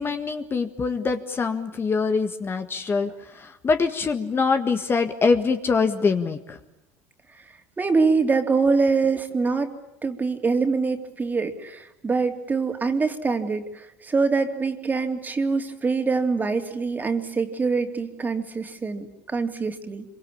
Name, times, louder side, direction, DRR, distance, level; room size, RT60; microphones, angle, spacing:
voice 1, 0.0-6.6, left 4 dB, 25° left, 7 dB, 1.7 m, -24 dB
voice 2, 7.8-9.7 10.0-20.0, right 4 dB, 20° right, 6 dB, 3.1 m, -24 dB
26.0 x 24.0 x 8.7 m, 0.87 s
supercardioid pair, 100°, 8 cm